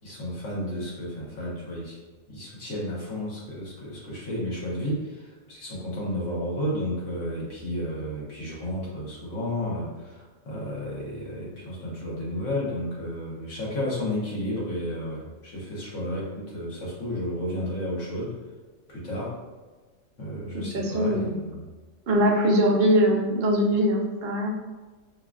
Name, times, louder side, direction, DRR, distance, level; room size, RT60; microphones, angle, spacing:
voice 1, 0.0-2.0 2.3-18.3 18.9-19.3 20.2-21.7, left 1 dB, 60° left, -5 dB, 1.5 m, -32 dB
voice 2, 20.5-21.3 22.1-24.5, equal, 55° right, -1 dB, 0.8 m, -22 dB
5.5 x 2.4 x 2.4 m, 1.3 s
omnidirectional pair, 1.4 m